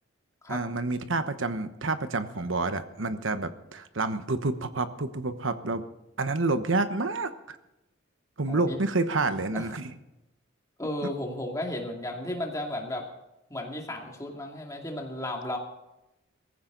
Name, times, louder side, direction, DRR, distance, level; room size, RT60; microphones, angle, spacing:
voice 1, 0.5-5.8 6.2-7.6 8.4-9.9 11.0-11.1, right 3 dB, 70° right, 10 dB, 1.1 m, -29 dB
voice 2, 8.5-8.8 9.5-9.7 10.8-13.1 13.5-15.6, left 1 dB, 15° left, 1 dB, 2.4 m, -34 dB
17.5 x 15.5 x 4.0 m, 0.94 s
head